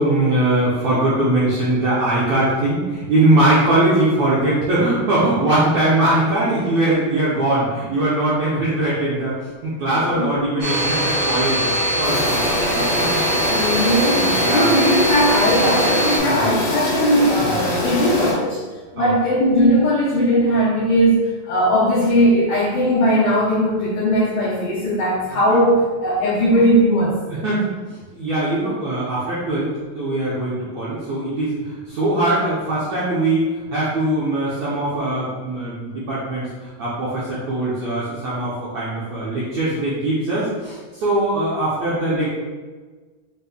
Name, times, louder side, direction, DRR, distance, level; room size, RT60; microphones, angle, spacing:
voice 1, 0.0-9.4 9.6-12.4 12.7-13.2 14.1-14.7 16.2-16.5 17.4-17.5 19.0-19.1 25.2-25.6 27.3-29.7 29.9-42.3, right 1 dB, 80° right, -8 dB, 1.6 m, -21 dB
voice 2, 9.9-10.5 13.5-18.6 18.9-27.1, equal, 75° left, -8 dB, 1.7 m, -18 dB
Domestic sounds home sounds, 10.6-16.2, right 1 dB, 55° right, 1.3 m, -22 dB
sound 1, 12.0-18.3, left 1 dB, 60° left, 1.5 m, -24 dB
6.3 x 3.5 x 2.2 m, 1.4 s
omnidirectional pair, 4.2 m